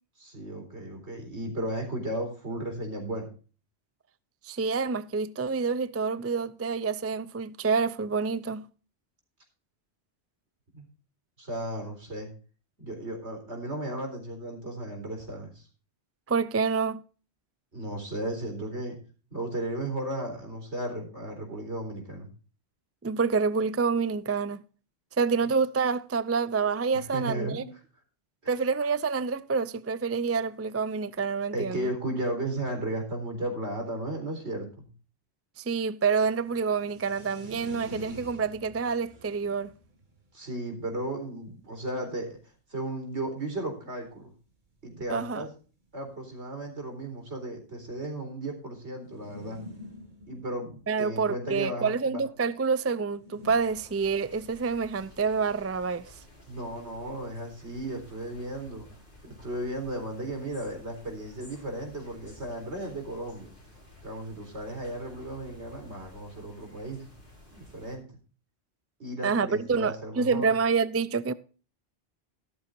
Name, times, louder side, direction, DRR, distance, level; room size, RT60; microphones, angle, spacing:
voice 1, 0.2-3.3 10.7-10.9 11.4-12.3 12.8-15.7 17.7-19.0 19.3-22.3 27.1-27.7 28.4-28.5 31.5-34.9 40.3-44.3 44.8-45.5 45.9-49.6 50.3-52.2 56.5-58.9 59.2-63.5 64.0-67.1 67.5-68.2 69.0-70.5, right 1 dB, 80° right, 4.3 m, -35 dB
voice 2, 4.4-8.6 16.3-17.0 23.0-24.6 25.2-27.6 28.5-31.9 35.6-39.7 45.1-45.4 50.9-56.2 69.2-71.3, right 5 dB, 20° right, 0.3 m, -27 dB
sound 1, 36.3-42.5 43.1-43.2 43.4-43.5 43.7-43.9 44.8-44.9 45.1-45.2 46.0-47.5 49.0-51.6 53.0-53.5, equal, 45° right, 2.3 m, -48 dB
sound 2, 53.4-68.0, left 1 dB, 50° left, 6.1 m, -53 dB
14.0 x 12.5 x 2.6 m
omnidirectional pair, 1.1 m